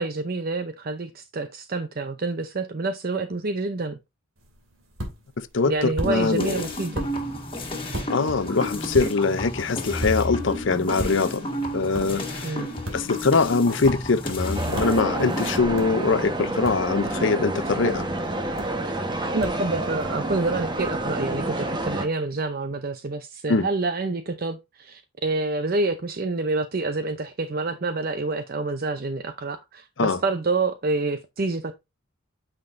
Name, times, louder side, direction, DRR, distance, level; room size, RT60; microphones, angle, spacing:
voice 1, 0.0-4.0 5.7-7.1 12.4-12.7 19.3-31.7, right 3 dB, 50° right, 0.6 m, -27 dB
sound 1, 4.4-21.1, equal, 90° right, 2.5 m, -39 dB
voice 2, 5.4-6.6 8.1-11.5 11.7-12.6 12.9-18.1 23.5-23.7 30.0-30.2, left 4 dB, 65° left, 0.7 m, -23 dB
sound 2, 6.0-15.6, left 1 dB, 25° left, 1.8 m, -31 dB
sound 3, 14.5-22.1, right 1 dB, 25° right, 1.2 m, -29 dB
8.8 x 5.8 x 2.6 m
head